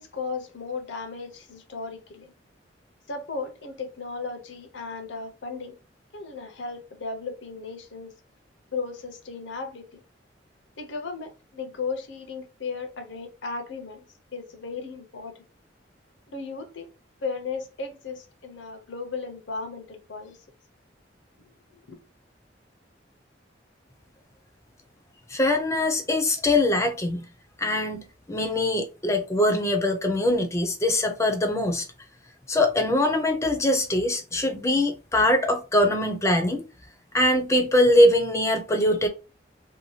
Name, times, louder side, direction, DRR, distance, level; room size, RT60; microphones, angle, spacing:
voice 1, 0.0-2.3 3.1-5.8 6.1-8.1 8.7-10.0 10.8-14.0 14.3-15.4 16.3-16.9 17.2-20.4 21.7-22.0, left 4 dB, 80° left, 0.7 m, -35 dB
voice 2, 25.3-27.2 27.6-31.9 32.5-36.7 37.1-39.1, left 1 dB, 15° left, 0.5 m, -22 dB
2.7 x 2.2 x 3.1 m
head